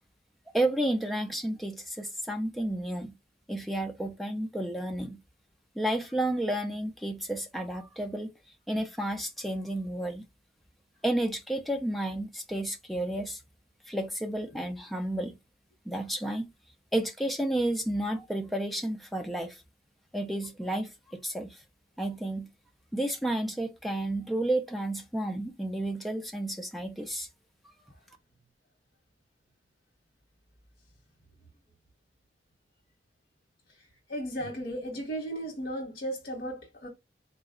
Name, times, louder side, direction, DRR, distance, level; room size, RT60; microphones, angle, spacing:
voice 1, 0.5-3.2 3.5-5.2 5.8-8.3 8.7-10.2 11.0-13.4 13.9-15.4 15.9-16.5 16.9-19.6 20.1-21.6 22.0-22.5 22.9-27.3, right 1 dB, ahead, 0.5 m, -31 dB
voice 2, 34.1-36.9, right 1 dB, 60° left, 1.1 m, -35 dB
4.0 x 2.2 x 3.6 m
head